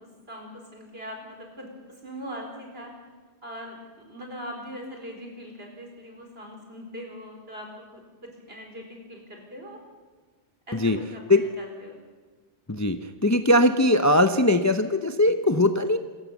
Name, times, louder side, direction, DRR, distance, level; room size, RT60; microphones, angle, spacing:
voice 1, 0.0-2.9 3.4-9.8 10.7-12.0, equal, 60° right, 1 dB, 4.6 m, -41 dB
voice 2, 12.7-16.0, left 1 dB, 20° left, 8 dB, 0.6 m, -20 dB
26.5 x 14.5 x 7.1 m, 1.4 s
omnidirectional pair, 1.2 m